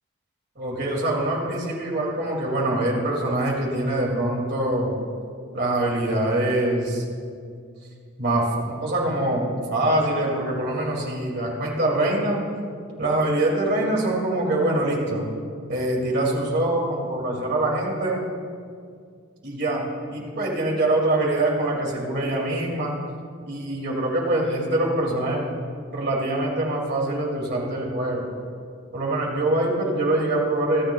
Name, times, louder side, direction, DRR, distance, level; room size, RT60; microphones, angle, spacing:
voice 1, 0.6-5.0 5.5-7.0 8.2-12.4 13.0-15.3 15.7-18.2 19.4-19.8 20.1-22.9 23.5-25.5 25.9-28.3 28.9-30.9, right 1 dB, 50° right, -2 dB, 2.5 m, -24 dB
23.0 x 9.8 x 2.4 m, 2.3 s
head